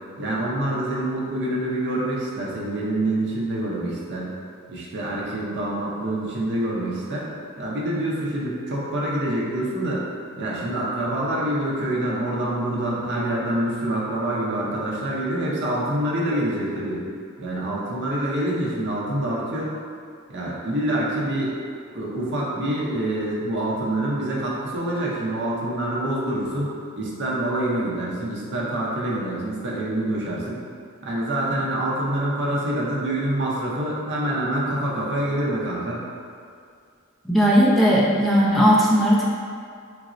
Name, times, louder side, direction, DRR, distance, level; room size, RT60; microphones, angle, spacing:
voice 1, 0.2-4.4 4.7-7.3 7.6-10.0 10.4-17.0 17.4-19.7 20.3-21.6 21.9-26.7 27.0-30.6 31.0-36.1, right 1 dB, 55° right, -5 dB, 0.6 m, -26 dB
voice 2, 37.2-39.3, equal, ahead, -7 dB, 0.4 m, -17 dB
3.9 x 2.0 x 2.5 m, 2.3 s
head